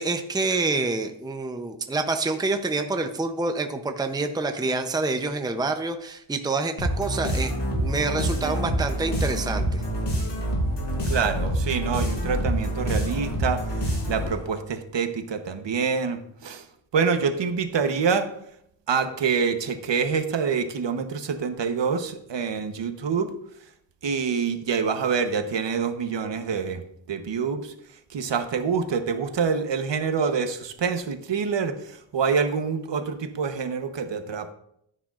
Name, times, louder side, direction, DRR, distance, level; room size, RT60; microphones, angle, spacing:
voice 1, 0.0-7.5 7.8-9.8, right 3 dB, 10° right, 6 dB, 0.6 m, -27 dB
sound 1, 6.8-14.5, equal, 60° left, 4.4 m, -26 dB
voice 2, 11.0-16.6 16.9-18.3 18.9-23.3 24.0-26.8 27.1-27.7 28.1-34.5, right 6 dB, 65° right, 8 dB, 1.0 m, -26 dB
14.0 x 8.9 x 2.5 m, 0.72 s
wide cardioid pair, 130°, 47 cm